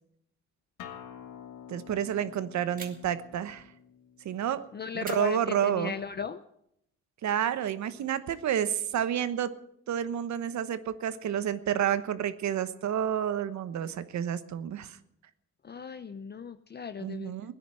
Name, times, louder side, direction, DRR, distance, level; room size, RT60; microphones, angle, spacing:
Acoustic guitar, 0.8-6.0, left 9 dB, 90° left, 1.7 m, -49 dB
voice 1, 1.7-3.7 4.2-4.6 4.9-6.0 7.2-9.5 9.9-15.0 17.0-17.5, right 9 dB, 65° right, 13 dB, 1.1 m, -30 dB
sound 1, 2.8-3.3 5.0-6.0, right 3 dB, 30° right, 2.2 m, -47 dB
voice 2, 4.7-6.4 15.6-17.3, left 6 dB, 35° left, 11 dB, 0.7 m, -37 dB
17.0 x 10.0 x 7.6 m, 0.75 s
cardioid pair, 90°, 30 cm